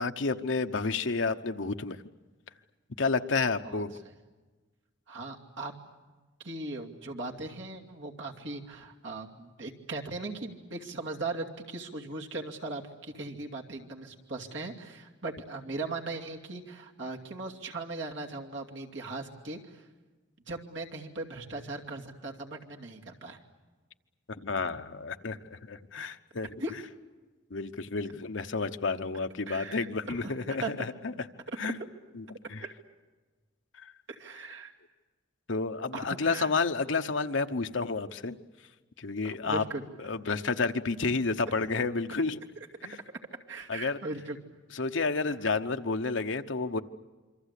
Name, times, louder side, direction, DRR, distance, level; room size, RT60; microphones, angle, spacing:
voice 1, 0.0-2.0 3.0-3.9 24.3-26.5 27.5-31.1 31.6-31.8 32.1-32.6 33.8-33.9 35.5-38.4 39.0-39.6 40.0-42.4 42.8-43.0 43.7-44.0 44.7-46.8, left 4 dB, 75° left, 7 dB, 1.0 m, -30 dB
voice 2, 5.1-5.7 6.4-19.8 20.5-23.4 26.6-26.7 29.5-30.7 31.5-31.7 32.6-32.7 34.1-34.7 35.9-36.5 39.2-39.9 42.9-43.0 43.5-44.4, right 2 dB, 70° right, 1 dB, 2.6 m, -39 dB
27.0 x 25.0 x 8.4 m, 1.3 s
head